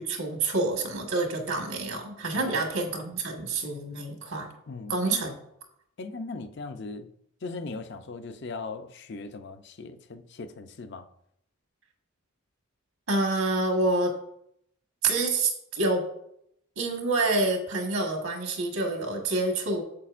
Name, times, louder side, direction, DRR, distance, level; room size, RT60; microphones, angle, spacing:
voice 1, 0.0-4.5 4.9-5.3 13.1-14.1 15.0-16.0 16.8-19.8, right 2 dB, 75° right, 3 dB, 1.5 m, -27 dB
voice 2, 4.7-5.2 6.0-7.1 7.4-11.1, left 3 dB, 50° left, 9 dB, 0.5 m, -38 dB
8.4 x 7.4 x 2.5 m, 0.74 s
head